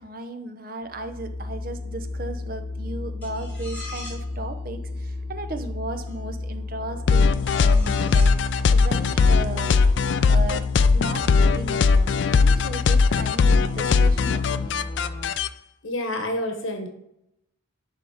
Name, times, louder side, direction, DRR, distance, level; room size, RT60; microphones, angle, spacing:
voice 1, 0.0-9.8 10.2-14.8, right 2 dB, 45° right, 8 dB, 0.7 m, -36 dB
sound 1, 0.8-15.3, left 2 dB, 40° left, 0.9 m, -34 dB
sound 2, 3.2-4.3 6.1-6.2 7.5-8.4, left 2 dB, 10° left, 2.7 m, -41 dB
sound 3, 7.1-15.5, left 4 dB, 60° left, 0.3 m, -19 dB
voice 2, 15.8-16.9, left 1 dB, 75° left, 5 dB, 1.4 m, -28 dB
11.0 x 3.7 x 5.0 m, 0.80 s
head